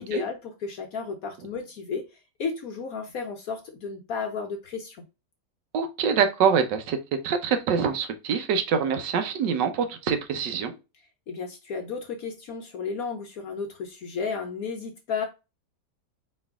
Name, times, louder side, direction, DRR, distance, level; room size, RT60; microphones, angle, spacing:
voice 1, 0.0-2.0 2.4-5.0 11.3-15.3, left 5 dB, 65° left, 4 dB, 1.1 m, -33 dB
voice 2, 5.7-7.0 7.2-10.7, right 6 dB, 85° right, 8 dB, 1.4 m, -25 dB
4.4 x 3.2 x 3.5 m, 0.27 s
omnidirectional pair, 1.8 m